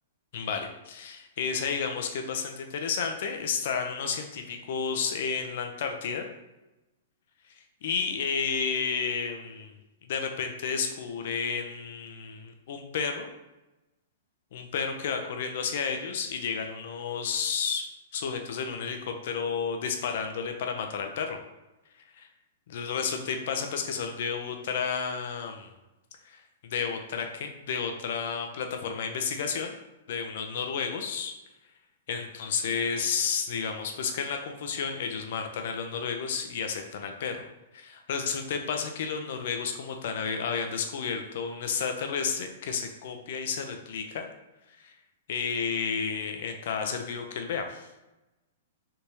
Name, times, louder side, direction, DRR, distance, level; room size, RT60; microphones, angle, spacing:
voice 1, 0.3-6.3 7.8-9.7 10.1-13.3 14.5-17.9 18.1-21.4 22.1-22.3 22.7-25.7 26.3-26.4 26.7-29.7 30.1-31.3 32.1-37.4 37.7-44.3 44.8-44.9 45.3-47.9, left 6 dB, 65° left, 5 dB, 0.5 m, -31 dB
3.4 x 2.7 x 3.0 m, 1.0 s
hypercardioid pair, 125°, 0 cm